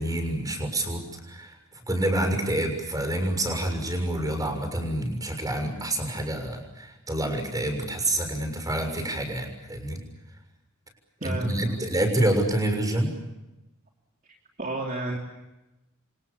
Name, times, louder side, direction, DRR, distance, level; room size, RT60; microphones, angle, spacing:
voice 1, 0.0-1.5 1.9-10.0 11.2-13.1, right 1 dB, 15° right, 5 dB, 6.6 m, -27 dB
voice 2, 11.2-11.8 14.6-15.2, right 2 dB, 40° right, 0 dB, 3.2 m, -31 dB
29.5 x 26.0 x 7.0 m, 1.0 s
head